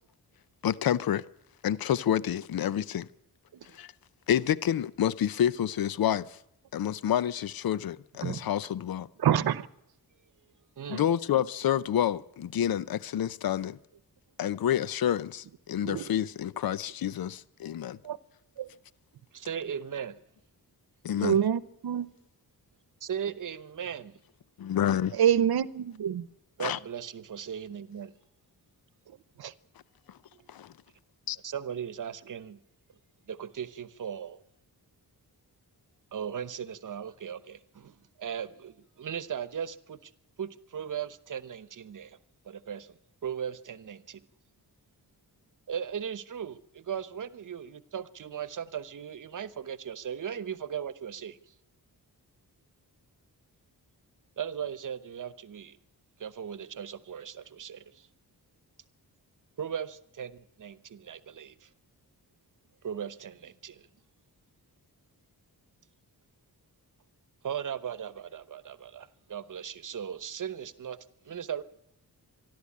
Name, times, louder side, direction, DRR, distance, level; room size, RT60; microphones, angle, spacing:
voice 1, 0.6-1.2 1.6-3.1 3.7-3.9 4.3-6.4 6.7-9.1 10.9-13.8 14.4-18.0 21.0-21.4 24.6-25.2 26.6-26.8 30.5-30.7 31.3-31.4, left 10 dB, 65° left, 0.7 m, -28 dB
voice 2, 9.2-9.7 15.8-16.0 18.0-18.2 18.6-18.7 21.2-22.1 25.2-26.2 29.4-29.5, right 9 dB, 75° right, 0.9 m, -26 dB
voice 3, 19.3-20.2 23.0-24.2 26.6-28.1 31.4-32.6 33.3-34.4 36.1-40.1 40.4-42.2 42.4-44.2 45.7-51.5 54.4-55.8 56.2-58.1 59.6-61.7 62.8-63.9 67.4-71.0 71.2-71.6, right 8 dB, 55° right, 1.0 m, -38 dB
25.0 x 12.0 x 8.5 m
wide cardioid pair, 170°, 38 cm